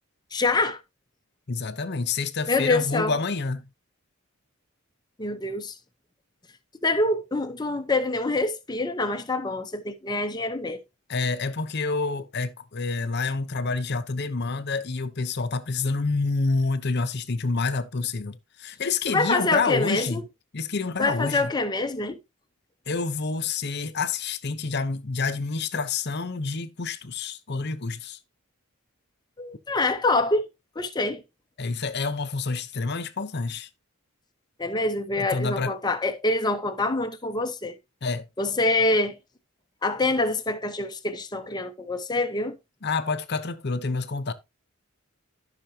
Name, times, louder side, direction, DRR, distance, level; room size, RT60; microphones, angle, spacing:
voice 1, 0.3-0.8 2.5-3.1 5.2-5.7 6.8-10.8 19.1-20.2 21.0-22.2 29.4-30.5 30.8-31.2 34.6-37.7 38.4-39.2 39.8-42.6, left 2 dB, 20° left, 0.9 m, -25 dB
voice 2, 1.5-3.7 11.1-20.2 20.5-21.5 22.9-28.2 31.6-33.7 35.3-35.7 38.0-38.3 42.8-44.3, left 4 dB, 50° left, 0.8 m, -28 dB
14.0 x 5.9 x 2.8 m
head